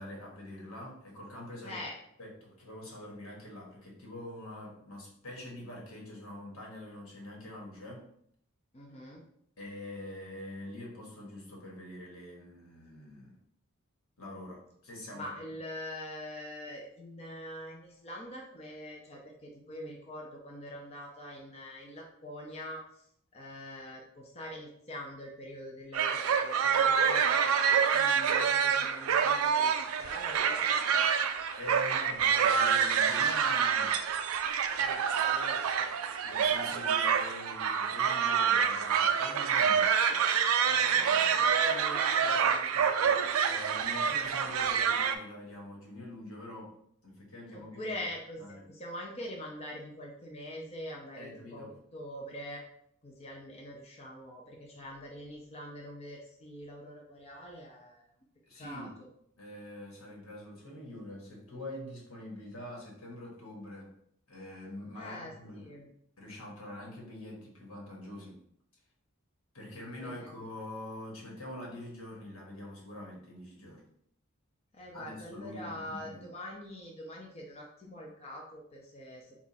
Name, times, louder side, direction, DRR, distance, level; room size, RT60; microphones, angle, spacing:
voice 1, 0.0-1.8 2.2-8.0 9.6-13.4 14.2-15.3 31.5-34.0 36.2-40.2 40.9-41.4 43.5-46.7 47.0-47.9 48.4-48.6 51.2-51.7 58.5-58.9 59.4-63.9 64.3-65.8 66.2-68.4 69.5-73.8 74.9-76.2, left 1 dB, 80° left, -2 dB, 1.4 m, -45 dB
voice 2, 1.6-1.9 8.7-9.2 15.1-23.0 23.3-31.2 34.8-35.9 40.6-43.6 47.5-52.6 53.0-58.1 58.5-59.1 64.9-65.9 70.0-70.3 74.7-79.3, left 1 dB, 30° left, -1 dB, 0.6 m, -44 dB
sound 1, 25.9-45.1, right 7 dB, 80° right, 0.4 m, -27 dB
4.2 x 2.4 x 4.1 m, 0.70 s
head